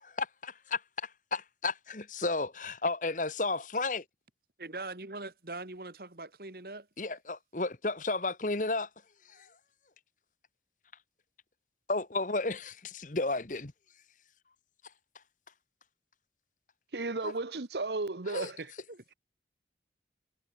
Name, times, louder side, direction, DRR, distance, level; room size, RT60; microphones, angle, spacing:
voice 1, 0.0-4.0 7.0-8.9 9.3-9.5 11.9-13.7 17.2-17.3 18.3-18.5, left 3 dB, 45° left, 1.3 m, -33 dB
voice 2, 4.6-6.9 18.9-19.1, right 2 dB, 55° right, 1.9 m, -42 dB
voice 3, 16.9-18.7, right 3 dB, 70° right, 1.0 m, -34 dB
head